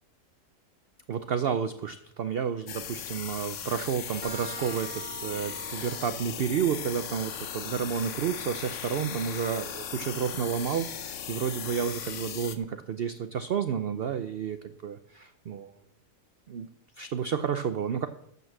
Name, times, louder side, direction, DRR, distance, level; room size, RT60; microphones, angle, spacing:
voice 1, 1.1-15.7 16.5-16.7 17.0-18.1, right 7 dB, 70° right, 10 dB, 0.5 m, -31 dB
sound 1, 2.7-12.6, left 8 dB, 55° left, 1.0 m, -38 dB
sound 2, 4.2-11.6, right 3 dB, 20° left, 2.0 m, -48 dB
12.5 x 5.4 x 7.5 m, 0.75 s
omnidirectional pair, 1.7 m